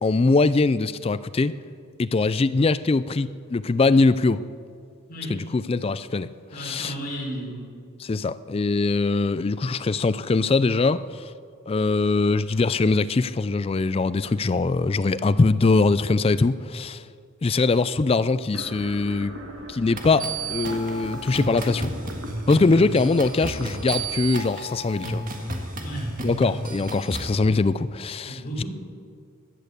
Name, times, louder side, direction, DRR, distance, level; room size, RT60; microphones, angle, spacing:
voice 1, 0.0-1.6 2.0-4.4 5.3-6.3 6.6-6.9 8.0-11.3 11.7-17.0 17.4-19.3 19.7-21.9 22.5-25.2 26.2-28.7, left 3 dB, 25° left, 15 dB, 0.3 m, -22 dB
voice 2, 6.5-7.7 25.8-26.1 28.2-28.7, right 1 dB, 45° left, -5 dB, 4.7 m, -33 dB
sound 1, 18.5-25.6, equal, 65° right, 1.7 m, -40 dB
sound 2, 20.0-27.3, right 2 dB, 40° right, 1.8 m, -32 dB
16.0 x 11.0 x 6.7 m, 2.2 s
head